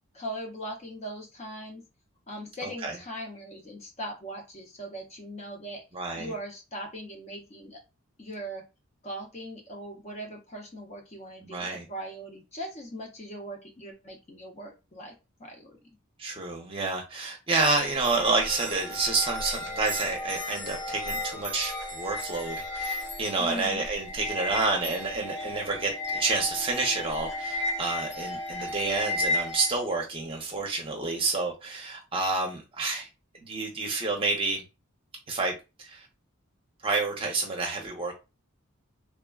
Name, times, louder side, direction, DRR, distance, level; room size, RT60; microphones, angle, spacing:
voice 1, 0.1-1.8 2.3-5.8 6.2-7.8 8.2-8.7 9.0-15.1 15.4-15.8 23.4-23.8, right 1 dB, 30° left, 0.5 m, -40 dB
voice 2, 2.6-3.0 5.9-6.3 11.4-11.8 16.2-33.1 33.4-34.6 35.3-35.5 35.8-36.1 36.8-38.1, right 3 dB, 25° right, 0.6 m, -29 dB
sound 1, 17.6-29.7, left 1 dB, 55° left, 0.8 m, -34 dB
3.2 x 2.0 x 2.3 m
head